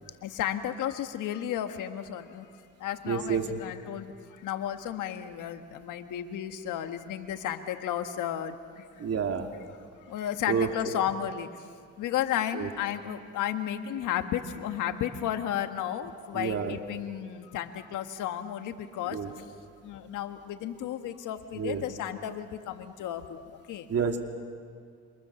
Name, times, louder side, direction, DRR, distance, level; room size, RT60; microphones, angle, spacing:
voice 1, 0.2-2.4 2.8-4.1 4.4-8.5 10.1-11.5 12.0-19.2 19.9-23.4 23.7-23.9, left 10 dB, 85° left, 8 dB, 1.6 m, -33 dB
voice 2, 3.1-3.6 9.0-9.5 10.5-11.0 12.5-12.7 16.3-16.8 19.1-19.3 21.6-21.8 23.9-24.2, right 6 dB, 55° right, 4 dB, 2.7 m, -29 dB
27.5 x 26.0 x 7.1 m, 2.2 s
cardioid pair, 90°, 30 cm